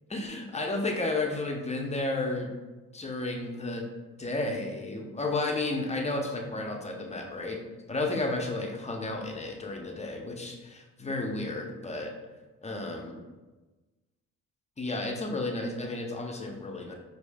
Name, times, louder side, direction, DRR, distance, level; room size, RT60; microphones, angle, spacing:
voice 1, 0.1-2.5 2.9-3.9 4.2-7.6 7.9-12.1 12.6-13.2 14.8-16.9, left 2 dB, 20° left, 1 dB, 0.7 m, -32 dB
4.6 x 2.7 x 2.2 m, 1.2 s
supercardioid pair, 70°, 32 cm